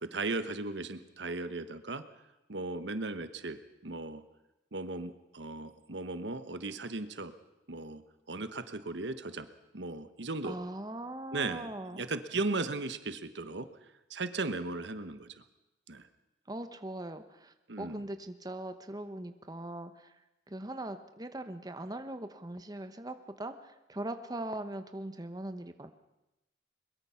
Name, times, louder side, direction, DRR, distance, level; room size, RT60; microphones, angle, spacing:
voice 1, 0.0-2.0 2.5-4.2 4.7-7.3 7.7-8.0 8.3-9.5 9.7-10.6 11.3-13.7 14.1-15.4 15.9-16.0 17.7-18.0, right 3 dB, 75° right, 11 dB, 1.2 m, -36 dB
voice 2, 10.4-12.0 16.5-20.1 20.5-25.9, right 1 dB, 20° right, 9 dB, 1.1 m, -41 dB
22.0 x 22.0 x 5.8 m, 0.96 s
head